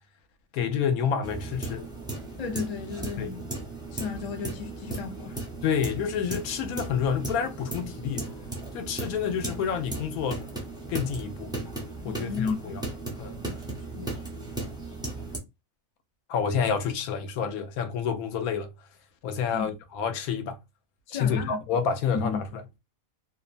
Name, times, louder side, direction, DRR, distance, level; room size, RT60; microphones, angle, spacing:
voice 1, 0.5-1.9 3.2-3.3 5.6-8.3 8.7-10.4 10.9-11.5 12.0-12.8 13.2-13.4 16.3-18.7 19.2-20.6 21.1-22.6, left 7 dB, 90° left, 1.1 m, -28 dB
sound 1, 1.2-15.4, right 2 dB, 5° right, 0.4 m, -36 dB
voice 2, 2.4-3.5 3.9-5.4 12.1-12.7 13.4-14.3 19.5-19.7 21.1-21.6 22.1-22.4, left 5 dB, 70° left, 0.3 m, -34 dB
2.9 x 2.1 x 2.5 m
omnidirectional pair, 1.5 m